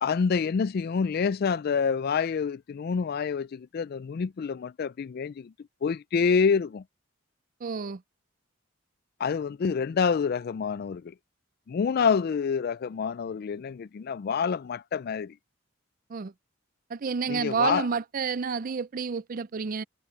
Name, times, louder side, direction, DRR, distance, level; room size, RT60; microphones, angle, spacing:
voice 1, 0.0-5.5 5.8-6.8 9.2-11.1 11.7-15.3 17.3-17.9, left 6 dB, 50° left, 0.3 m, -27 dB
voice 2, 7.6-8.0 16.1-16.3 16.9-19.8, right 5 dB, 40° right, 0.4 m, -29 dB
head